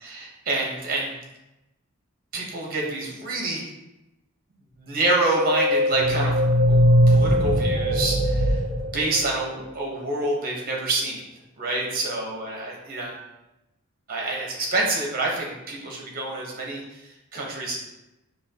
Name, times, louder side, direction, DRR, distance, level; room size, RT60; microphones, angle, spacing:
voice 1, 0.0-1.1 2.3-3.6 4.8-8.6 8.9-11.2 11.6-13.2 14.1-16.8 17.3-17.8, right 2 dB, 40° right, -1 dB, 0.9 m, -27 dB
sound 1, 5.1-9.7, equal, 85° left, 1.2 m, -21 dB
5.7 x 2.3 x 2.8 m, 0.95 s
head